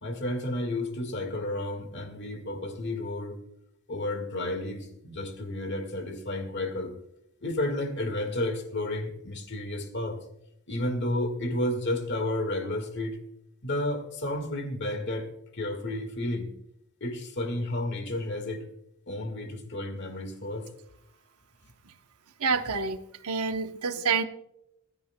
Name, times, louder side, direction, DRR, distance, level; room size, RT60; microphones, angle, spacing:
voice 1, 0.0-3.4 3.9-6.9 7.4-10.2 10.7-13.2 13.6-15.3 15.5-16.5 17.0-18.6 19.1-20.7, left 1 dB, 50° left, 7 dB, 1.8 m, -31 dB
voice 2, 22.4-24.2, right 5 dB, 90° right, 8 dB, 0.9 m, -28 dB
26.0 x 10.0 x 2.2 m, 0.80 s
head